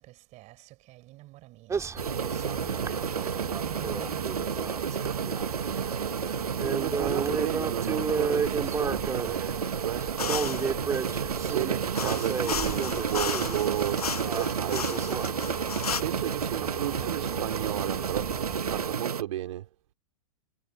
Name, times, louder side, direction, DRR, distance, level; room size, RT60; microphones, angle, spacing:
voice 1, 0.0-5.7, right 19 dB, 40° right, 5.5 m, -50 dB
sound 1, 1.7-19.0, right 6 dB, 15° right, 3.2 m, -34 dB
sound 2, 2.0-19.2, right 7 dB, 90° right, 1.3 m, -31 dB
voice 2, 6.5-10.5 11.4-15.3 16.0-19.7, right 13 dB, 65° right, 4.3 m, -34 dB
sound 3, 10.2-10.7 11.9-16.0, left 7 dB, 90° left, 1.3 m, -34 dB
hypercardioid pair, 115°, 19 cm